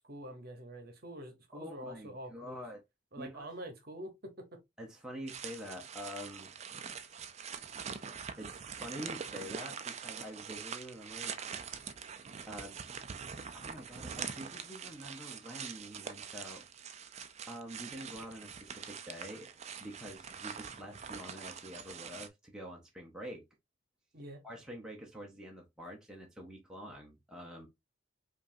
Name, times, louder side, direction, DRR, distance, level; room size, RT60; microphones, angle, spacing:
voice 1, 0.0-2.7 3.1-4.6 24.1-24.4, right 1 dB, 45° right, 1.0 m, -46 dB
voice 2, 1.5-2.8 3.2-3.5 4.8-6.5 8.4-11.3 12.5-12.8 13.5-17.1 17.5-19.5 19.8-23.4 24.4-27.7, equal, 5° right, 0.8 m, -46 dB
sound 1, 5.3-22.3, right 6 dB, 30° right, 0.4 m, -44 dB
5.3 x 2.6 x 2.7 m
head